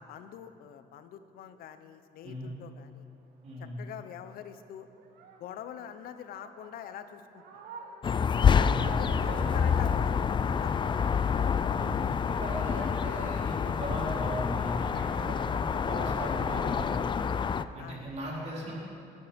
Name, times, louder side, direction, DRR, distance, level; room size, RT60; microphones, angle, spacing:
voice 1, 0.0-3.1 3.6-4.9 5.4-7.6 8.8-11.0 14.0-14.2 15.7-16.0 17.8-18.0, left 9 dB, 70° left, 10 dB, 0.9 m, -45 dB
sound 1, 3.1-13.3 13.6-16.6, right 5 dB, 85° right, 1.5 m, -51 dB
voice 2, 3.4-3.8 8.7-9.9 11.7-17.2 17.7-18.7, equal, 45° right, -6 dB, 4.4 m, -38 dB
sound 2, 8.0-17.6, left 6 dB, 30° left, 0.4 m, -27 dB
21.0 x 9.7 x 5.3 m, 2.5 s
cardioid pair, 100°, 15 cm